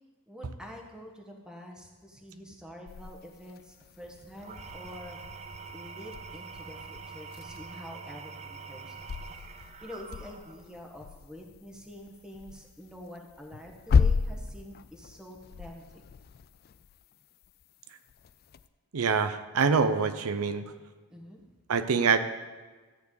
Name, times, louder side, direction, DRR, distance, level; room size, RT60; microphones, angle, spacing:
voice 1, 0.3-5.2 5.7-9.2 9.8-16.0 21.1-21.4, left 1 dB, 5° right, 1 dB, 1.2 m, -47 dB
sound 1, 2.9-18.7, left 5 dB, 45° left, 0.3 m, -35 dB
Engine / Tools, 4.3-10.8, right 5 dB, 30° right, 0.4 m, -45 dB
voice 2, 18.9-20.7 21.7-22.2, right 5 dB, 80° right, 11 dB, 0.6 m, -25 dB
13.5 x 4.6 x 8.2 m, 1.4 s
head